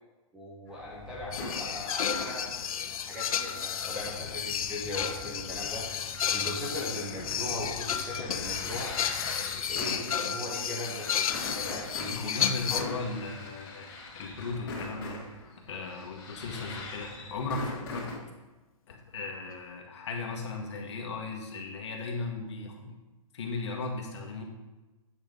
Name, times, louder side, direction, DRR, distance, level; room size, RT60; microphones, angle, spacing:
voice 1, 0.3-2.5 3.0-4.4 4.7-5.8 6.3-8.9 9.7-11.1 11.6-12.5 12.7-12.8, left 1 dB, 5° right, -6 dB, 0.7 m, -39 dB
sound 1, 0.7-18.1, left 3 dB, 35° left, 2.4 m, -42 dB
sound 2, 1.3-12.9 17.1-17.2 17.6-17.7 18.9-19.0, left 8 dB, 85° left, 0.5 m, -32 dB
voice 2, 12.1-15.2 15.6-18.1 18.9-23.0 23.3-24.4, left 3 dB, 55° left, 1 dB, 1.3 m, -37 dB
8.8 x 3.6 x 5.1 m, 1.1 s
hypercardioid pair, 170°, 18 cm